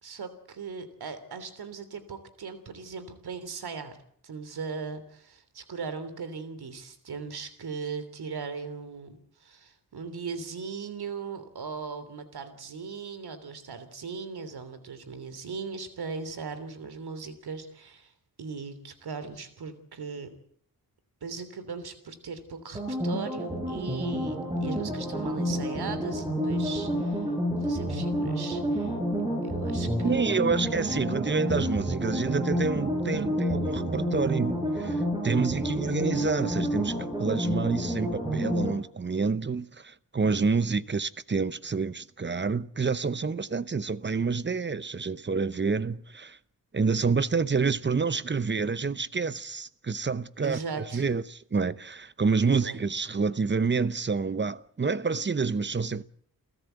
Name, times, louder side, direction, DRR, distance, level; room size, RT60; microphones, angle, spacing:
voice 1, 0.0-4.0 4.2-18.1 18.4-20.3 21.2-27.3 27.6-29.0 29.4-30.4 50.4-51.0 52.4-52.8, right 5 dB, 90° right, 3.3 m, -38 dB
sound 1, 22.7-38.7, equal, 10° right, 6.2 m, -29 dB
voice 2, 30.0-46.4 46.7-56.0, right 4 dB, 30° right, 0.8 m, -28 dB
29.5 x 14.0 x 8.1 m
wide cardioid pair, 105°, 37 cm